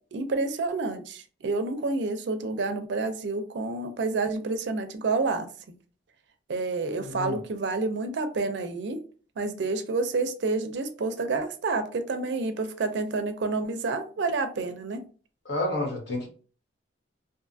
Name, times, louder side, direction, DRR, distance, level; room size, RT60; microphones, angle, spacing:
voice 1, 0.1-5.7 6.5-9.0 9.4-15.0, right 3 dB, 65° right, 7 dB, 0.4 m, -29 dB
voice 2, 7.0-7.4 15.4-16.3, left 1 dB, 65° left, -1 dB, 1.0 m, -30 dB
2.6 x 2.3 x 2.5 m, 0.40 s
head